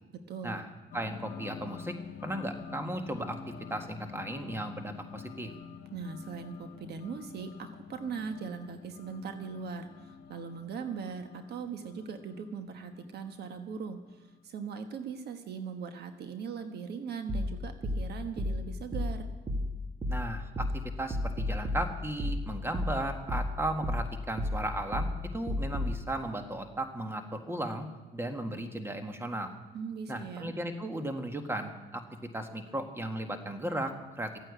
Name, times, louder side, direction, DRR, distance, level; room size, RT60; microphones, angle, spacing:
voice 1, 0.1-0.6 5.9-19.3 29.7-30.5, right 6 dB, 65° right, 7 dB, 1.2 m, -40 dB
sound 1, 0.9-14.9, left 7 dB, 75° left, 1.2 m, -48 dB
voice 2, 0.9-1.9 2.2-5.5 20.1-27.9 28.1-29.5 30.1-32.0 32.3-34.3, right 1 dB, 15° right, 6 dB, 1.7 m, -35 dB
sound 2, 17.3-26.0, left 1 dB, 35° right, 2.2 m, -33 dB
13.5 x 9.1 x 8.3 m, 1.2 s
cardioid pair, 85°, 18 cm